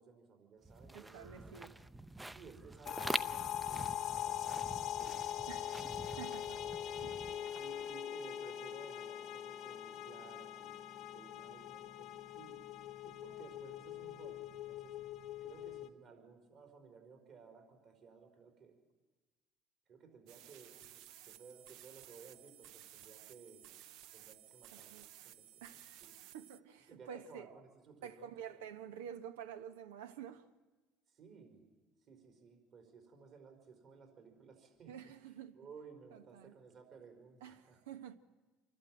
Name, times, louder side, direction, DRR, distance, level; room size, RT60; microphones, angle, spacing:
voice 1, 0.0-1.6 2.3-6.2 6.9-12.6 13.0-15.0 15.4-18.8 19.9-23.6 24.1-26.2 26.9-28.7 31.1-31.7 32.1-35.1 35.5-37.8, right 5 dB, 55° right, 4.8 m, -58 dB
sound 1, 0.6-7.9, right 2 dB, 10° right, 0.7 m, -46 dB
voice 2, 0.9-1.7 5.5-5.7 6.2-6.6 7.0-7.4 24.7-25.1 25.6-26.0 26.3-27.5 28.0-30.4 34.9-35.6 36.1-36.5 37.4-38.1, right 8 dB, 90° right, 1.1 m, -49 dB
sound 2, 2.9-15.9, left 11 dB, 60° left, 1.1 m, -42 dB
sound 3, 20.3-26.6, right 12 dB, 70° right, 0.7 m, -56 dB
26.5 x 12.0 x 9.0 m
supercardioid pair, 80°, 0 cm